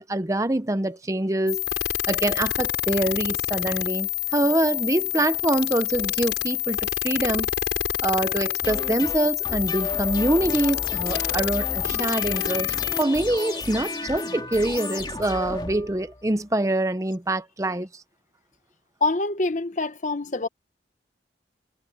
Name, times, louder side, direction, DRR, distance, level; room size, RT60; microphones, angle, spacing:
voice 1, 0.0-1.6 2.1-7.5 8.0-18.0, right 1 dB, 15° right, 0.7 m, -25 dB
sound 1, 1.5-13.0, left 12 dB, 85° left, 5.4 m, -27 dB
sound 2, 8.6-16.4, left 2 dB, 25° left, 2.3 m, -33 dB
voice 2, 19.0-20.5, left 3 dB, 40° left, 1.0 m, -25 dB
head